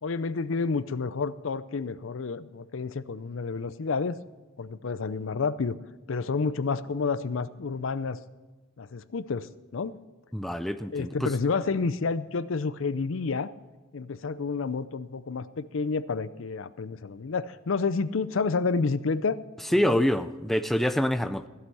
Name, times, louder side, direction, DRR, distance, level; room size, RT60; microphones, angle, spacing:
voice 1, 0.0-4.2 4.6-5.8 6.1-8.2 8.8-10.0 10.9-13.5 13.9-19.4 19.8-20.0, left 4 dB, 75° left, 15 dB, 0.5 m, -29 dB
voice 2, 10.3-11.3 19.7-21.5, equal, ahead, 10 dB, 0.4 m, -26 dB
15.0 x 8.1 x 5.6 m, 1.2 s
head